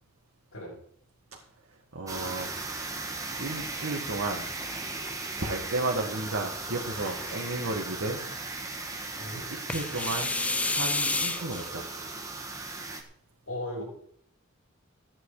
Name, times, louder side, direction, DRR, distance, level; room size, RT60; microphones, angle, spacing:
voice 1, 1.9-2.5 3.4-4.5 5.4-8.2 9.5-10.4 10.6-11.9, right 2 dB, 75° right, -1 dB, 1.9 m, -33 dB
sound 1, 2.1-13.0, right 3 dB, 15° right, 1.7 m, -37 dB
sound 2, 4.6-5.5 6.5-7.6 9.7-11.7, left 2 dB, 5° left, 0.4 m, -31 dB
voice 2, 9.2-9.5 13.5-13.8, left 1 dB, 90° left, -7 dB, 5.7 m, -37 dB
15.5 x 9.9 x 5.0 m, 0.66 s
head